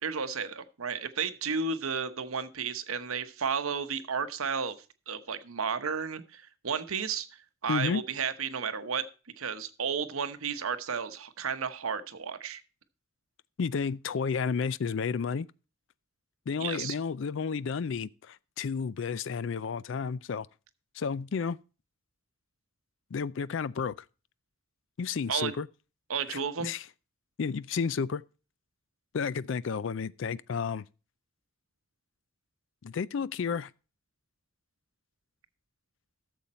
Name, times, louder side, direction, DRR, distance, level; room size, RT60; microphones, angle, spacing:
voice 1, 0.0-4.8 5.1-9.1 9.4-12.6 16.6-17.0 25.3-25.5 26.1-26.7, right 6 dB, 90° right, 0.9 m, -33 dB
voice 2, 7.7-8.0 13.6-15.5 16.5-20.5 21.0-21.6 23.1-24.0 25.0-25.7 26.3-26.8 27.4-28.2 29.1-30.8 32.8-33.7, left 5 dB, 65° left, 0.4 m, -31 dB
13.0 x 7.1 x 4.2 m
head